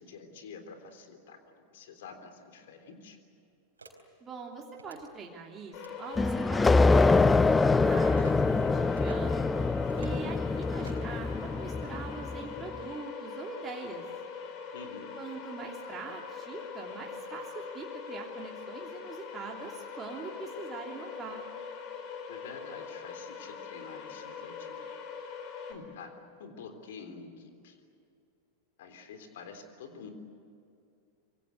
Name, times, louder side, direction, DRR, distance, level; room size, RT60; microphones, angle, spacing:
voice 1, 0.0-3.2 14.7-15.1 22.3-24.8 25.7-27.8 28.8-30.1, left 5 dB, 55° left, 7 dB, 3.6 m, -48 dB
sound 1, 3.8-3.9 4.7-5.0 5.7-6.0 6.6-6.9 8.1-8.3 9.0-9.2 9.9-10.2 10.8-11.1, right 3 dB, 75° right, 4.1 m, -49 dB
voice 2, 4.2-9.5 10.0-14.0 15.1-21.4, right 4 dB, 20° right, -1 dB, 3.0 m, -43 dB
sound 2, 5.7-25.7, left 6 dB, 40° left, 4.9 m, -42 dB
sound 3, 6.2-12.5, left 3 dB, 10° left, 0.6 m, -25 dB
26.0 x 24.0 x 8.2 m, 2.5 s
figure-of-eight pair, 90°, 0 cm